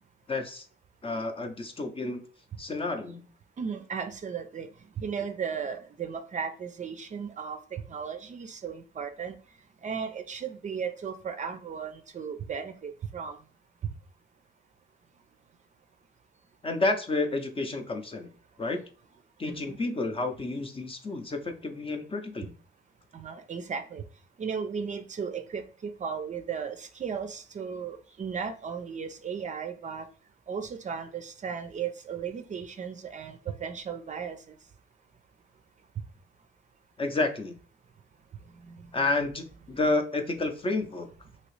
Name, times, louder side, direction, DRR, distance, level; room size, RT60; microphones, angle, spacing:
voice 1, 0.3-0.7 1.0-2.2 2.6-3.2 16.6-18.3 18.6-18.8 19.4-22.5 37.0-37.6 38.9-41.1, left 2 dB, 25° left, 6 dB, 0.6 m, -30 dB
voice 2, 3.6-4.7 5.0-9.4 9.8-13.4 19.5-19.8 23.1-24.0 24.4-30.1 30.5-34.4 38.7-38.8, right 6 dB, 40° right, 8 dB, 0.5 m, -35 dB
2.9 x 2.8 x 3.1 m, 0.41 s
cardioid pair, 90°, 20 cm